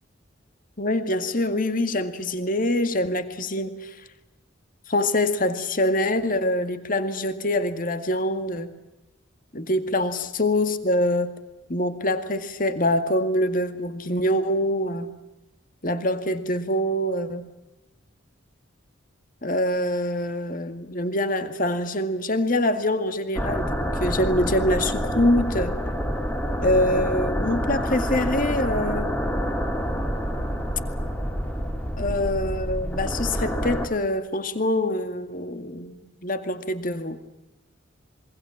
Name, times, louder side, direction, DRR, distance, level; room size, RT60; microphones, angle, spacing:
voice 1, 0.8-4.0 4.9-8.7 9.5-11.3 11.7-15.1 15.8-17.5 19.4-25.8 26.6-29.1 32.0-37.2, left 1 dB, 40° left, 10 dB, 2.1 m, -25 dB
sound 1, 23.3-33.9, equal, 5° left, 2.4 m, -27 dB
26.5 x 24.0 x 7.4 m, 0.96 s
head